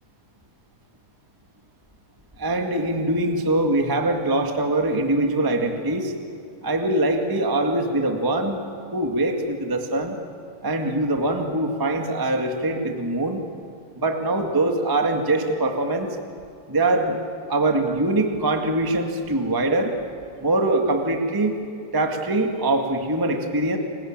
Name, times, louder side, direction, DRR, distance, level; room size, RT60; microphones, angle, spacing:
voice 1, 2.4-6.1 6.6-8.6 8.9-10.2 10.6-13.4 13.9-16.1 16.7-17.2 17.5-19.9 20.4-21.6 21.9-23.8, right 2 dB, 35° right, 3 dB, 0.3 m, -23 dB
29.5 x 21.0 x 9.0 m, 2.4 s
omnidirectional pair, 4.3 m